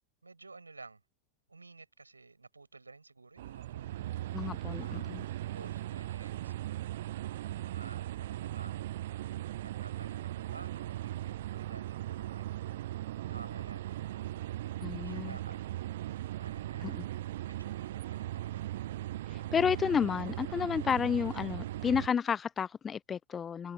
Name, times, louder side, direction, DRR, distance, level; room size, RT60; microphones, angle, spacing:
voice 1, 0.2-1.0 1.5-4.2 4.8-5.2 5.5-6.7 7.5-8.7 9.6-12.7 13.3-14.3 14.9-15.7 16.4-17.1 17.5-18.7, right 3 dB, 80° right, 6.3 m, -53 dB
sound 1, 3.4-22.1, right 14 dB, 55° right, 0.6 m, -38 dB
voice 2, 4.3-5.2 14.8-15.4 16.8-17.1 19.3-23.7, left 7 dB, 20° left, 0.3 m, -31 dB
figure-of-eight pair, 90°, 0 cm